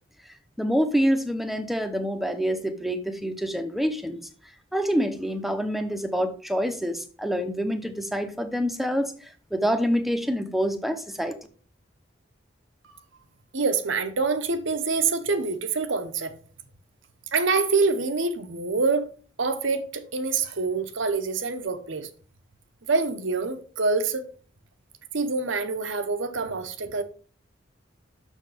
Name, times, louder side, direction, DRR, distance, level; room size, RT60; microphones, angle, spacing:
voice 1, 0.6-4.2 4.7-11.4, equal, ahead, 0.8 m, -26 dB
voice 2, 13.5-16.4 17.3-19.1 19.4-22.1 22.9-24.3 25.1-27.0, right 4 dB, 80° right, 1.0 m, -26 dB
6.6 x 6.4 x 4.9 m
head